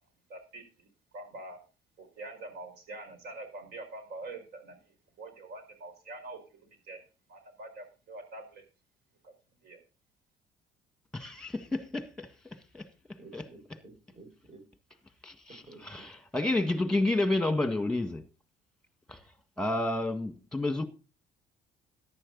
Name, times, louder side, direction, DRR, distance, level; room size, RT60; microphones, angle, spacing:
voice 1, 0.3-0.9 1.1-1.6 2.0-4.8 5.2-7.0 7.3-8.6 9.2-9.3 9.6-9.8, right 2 dB, 70° right, 4.8 m, -45 dB
voice 2, 11.1-12.9 13.3-13.4 15.2-18.2 19.1-19.2 19.6-20.8, left 2 dB, 5° left, 1.7 m, -30 dB
voice 3, 13.2-14.6 15.5-16.1, right 3 dB, 40° right, 5.7 m, -52 dB
14.0 x 10.5 x 4.0 m
cardioid pair, 110°, 17 cm